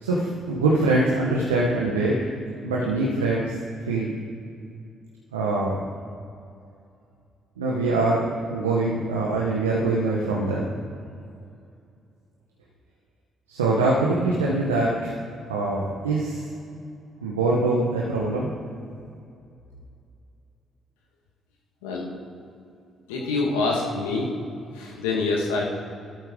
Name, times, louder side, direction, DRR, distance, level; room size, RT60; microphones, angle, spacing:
voice 1, 0.0-2.2 2.6-3.5 3.9-4.2 5.3-5.8 7.6-10.7 13.5-15.1 15.5-16.4 17.2-18.5, right 2 dB, 90° right, -4 dB, 1.1 m, -23 dB
voice 2, 23.1-24.3 24.7-25.6, left 3 dB, 80° left, -1 dB, 1.7 m, -25 dB
12.5 x 12.5 x 3.7 m, 2.5 s
hypercardioid pair, 45°, 0 cm